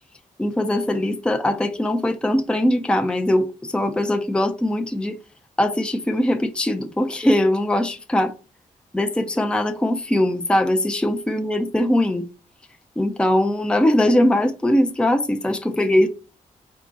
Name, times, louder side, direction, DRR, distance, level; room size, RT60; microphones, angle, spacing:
voice 1, 0.4-5.2 5.6-8.3 8.9-12.3 13.0-16.1, left 1 dB, 5° left, 0.5 m, -21 dB
4.8 x 2.4 x 3.8 m
cardioid pair, 95°, 14 cm